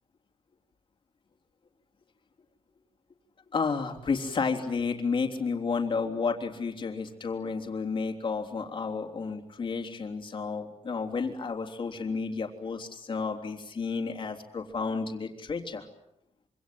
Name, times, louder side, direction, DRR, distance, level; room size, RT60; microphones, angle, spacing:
voice 1, 3.5-15.9, left 4 dB, 45° left, 4 dB, 3.5 m, -31 dB
26.5 x 26.0 x 7.7 m, 0.78 s
wide cardioid pair, 170°, 12 cm